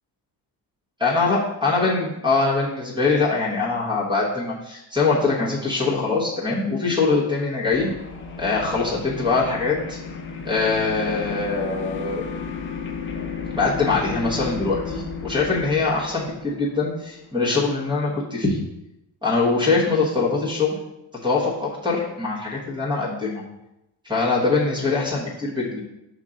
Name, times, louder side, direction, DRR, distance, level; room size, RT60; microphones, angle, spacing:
voice 1, 1.0-7.9 8.4-10.0 10.4-12.3 13.5-18.6 19.2-20.7 21.2-23.4 24.0-25.8, left 3 dB, 10° right, -3 dB, 1.1 m, -23 dB
sound 1, 7.7-17.6, left 5 dB, 25° left, 0.7 m, -34 dB
5.6 x 5.4 x 3.7 m, 0.90 s
cardioid pair, 175°, 44 cm